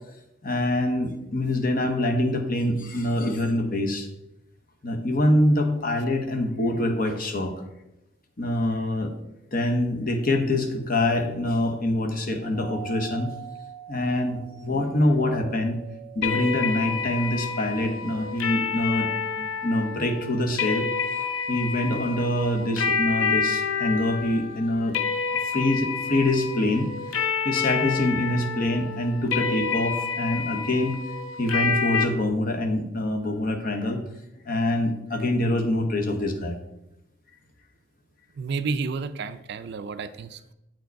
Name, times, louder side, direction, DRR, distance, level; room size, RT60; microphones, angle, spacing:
voice 1, 0.4-4.1 4.8-7.5 8.4-9.1 9.5-13.3 13.9-15.8 16.1-19.1 19.4-20.9 21.5-25.0 25.4-26.9 27.4-31.0 31.4-34.0 34.4-36.6, left 1 dB, 45° left, 4 dB, 1.0 m, -25 dB
Doorbell, 12.5-17.4, right 11 dB, 5° right, 0.8 m, -43 dB
sound 1, 16.2-32.0, left 5 dB, 85° left, 0.7 m, -28 dB
voice 2, 38.4-40.5, right 4 dB, 55° right, 12 dB, 0.4 m, -31 dB
7.7 x 4.8 x 4.6 m, 0.89 s
head